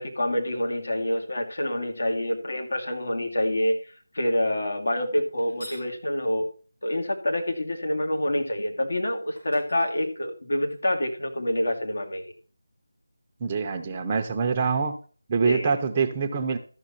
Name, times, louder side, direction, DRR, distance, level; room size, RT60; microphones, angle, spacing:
voice 1, 0.0-6.5 6.8-12.3 15.4-15.8, left 1 dB, 65° left, 3 dB, 2.2 m, -27 dB
sound 1, 5.4-5.9 8.9-9.0 9.4-10.7, equal, 85° left, 5.5 m, -47 dB
voice 2, 13.4-15.0 15.3-16.6, right 5 dB, 25° right, 5 dB, 0.7 m, -25 dB
13.0 x 6.0 x 4.2 m, 0.39 s
figure-of-eight pair, 165°, 0 cm